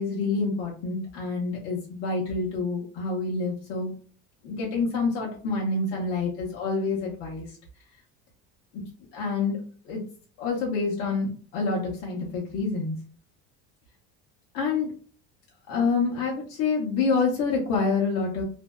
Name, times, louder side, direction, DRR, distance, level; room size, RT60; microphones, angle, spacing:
voice 1, 0.0-3.9 4.4-7.6 9.1-9.6 9.8-10.0 10.4-13.0 14.5-14.9 15.7-18.4, left 4 dB, 50° left, -4 dB, 0.6 m, -27 dB
2.5 x 2.1 x 2.2 m, 0.43 s
cardioid pair, 165°, 31 cm